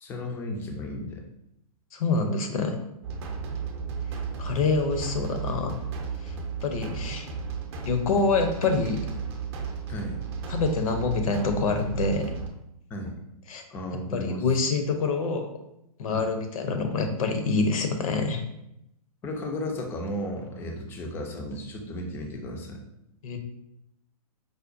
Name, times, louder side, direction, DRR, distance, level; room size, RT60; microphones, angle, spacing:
voice 1, 0.0-1.2 6.9-7.0 9.9-10.2 12.9-13.2 13.7-14.6 16.1-16.3 19.2-22.8, left 1 dB, 10° left, 2 dB, 0.3 m, -34 dB
voice 2, 1.9-2.7 4.4-5.7 6.2-6.3 6.6-7.3 7.8-9.0 10.5-12.2 13.5-13.6 14.1-15.5 16.0-18.4 23.2-23.4, left 4 dB, 65° left, 5 dB, 0.7 m, -26 dB
sound 1, 3.0-12.5, right 5 dB, 45° right, 0.6 m, -34 dB
4.8 x 2.2 x 2.5 m, 0.82 s
hypercardioid pair, 140°, 19 cm